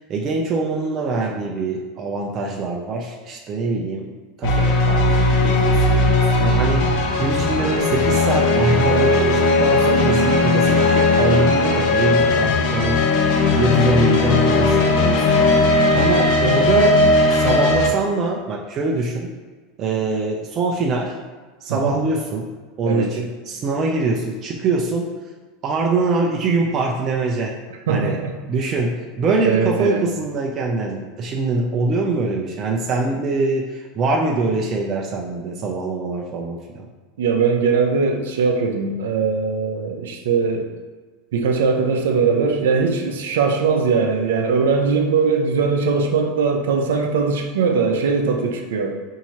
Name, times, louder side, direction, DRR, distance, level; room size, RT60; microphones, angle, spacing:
voice 1, 0.0-13.0 13.6-15.4 15.9-19.3 19.8-21.2 21.6-22.5 22.8-25.1 25.6-27.5 27.9-28.2 28.5-36.8, right 3 dB, 40° right, -1 dB, 0.5 m, -23 dB
sound 1, 4.4-17.9, left 2 dB, 65° left, 0.6 m, -17 dB
voice 2, 21.7-22.0 22.9-23.1 27.9-28.3 29.4-30.1 37.2-40.7 41.3-49.0, right 5 dB, 85° right, 3 dB, 0.6 m, -20 dB
4.6 x 2.7 x 3.0 m, 1.3 s
supercardioid pair, 115°, 0 cm